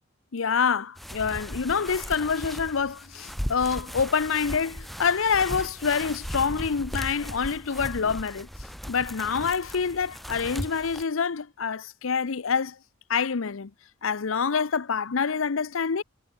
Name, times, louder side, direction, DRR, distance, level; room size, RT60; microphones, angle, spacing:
voice 1, 0.3-8.5 8.9-12.8 13.1-13.7 14.0-16.0, left 6 dB, 80° left, 0.7 m, -26 dB
sound 1, 1.0-11.0, equal, ahead, 0.6 m, -37 dB
head